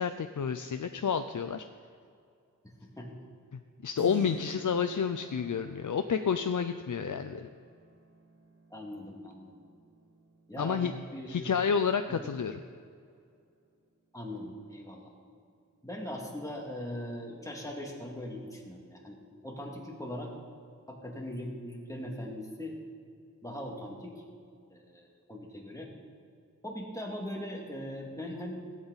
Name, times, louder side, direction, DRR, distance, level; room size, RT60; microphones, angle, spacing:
voice 1, 0.0-1.6 3.8-7.5 10.6-10.9 11.3-12.6, left 6 dB, 70° left, 8 dB, 0.5 m, -30 dB
Keyboard (musical), 4.0-12.5, right 3 dB, 50° right, 1.8 m, -50 dB
voice 2, 8.7-9.6 10.5-11.5 12.1-12.3 14.1-15.1 15.8-19.2 19.4-20.3 20.9-22.8 23.4-24.2 24.7-25.9 26.6-28.6, left 1 dB, 10° left, -1 dB, 2.3 m, -40 dB
16.5 x 8.7 x 4.1 m, 2.4 s
wide cardioid pair, 40°, 31 cm